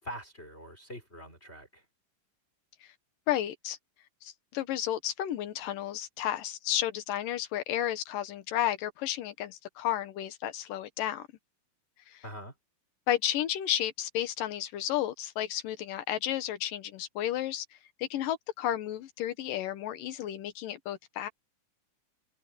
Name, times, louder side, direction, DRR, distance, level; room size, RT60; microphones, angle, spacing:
voice 1, 0.0-1.8 12.2-12.5, equal, 20° left, 4.9 m, -44 dB
voice 2, 3.3-3.8 4.2-11.2 12.1-12.2 13.1-17.6 18.0-21.3, left 12 dB, 85° left, 2.9 m, -32 dB
omnidirectional pair, 3.8 m